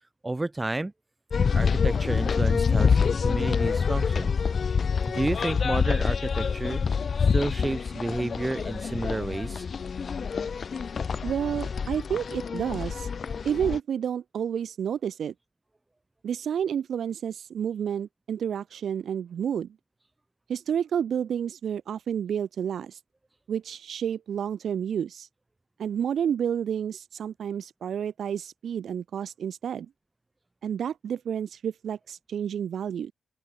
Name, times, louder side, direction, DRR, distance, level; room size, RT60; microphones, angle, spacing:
voice 1, 0.2-0.9 1.5-4.3 5.1-6.8 7.3-9.7, right 2 dB, 20° right, 3.7 m, -31 dB
sound 1, 1.3-13.8, left 6 dB, 55° left, 1.7 m, -26 dB
voice 2, 11.2-13.1 13.4-15.3 16.2-19.7 20.5-23.0 23.5-25.3 25.8-29.9 30.6-33.1, right 8 dB, 70° right, 1.5 m, -30 dB
open air
supercardioid pair, 50°, 0 cm